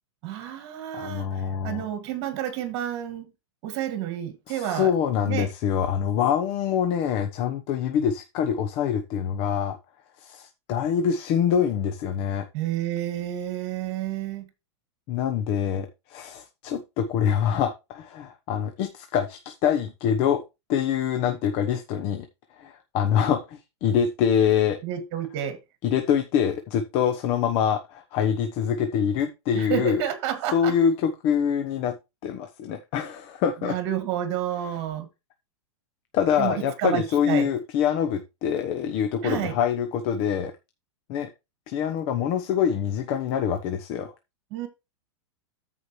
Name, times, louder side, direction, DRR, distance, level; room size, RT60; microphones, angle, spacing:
voice 1, 0.2-3.3 3.6-4.9 5.3-5.5 12.5-14.5 24.8-25.6 29.5-30.8 33.6-35.1 36.4-37.5 39.2-39.6 44.5-44.7, right 11 dB, 40° right, 2.2 m, -30 dB
voice 2, 0.9-1.9 4.5-9.8 10.2-12.4 15.1-20.4 20.7-22.3 22.6-24.8 25.8-30.0 30.5-31.9 32.2-33.8 36.1-40.5 41.1-41.3 41.7-44.1, left 8 dB, 35° left, 1.0 m, -25 dB
13.5 x 5.0 x 3.2 m
supercardioid pair, 150°, 15 cm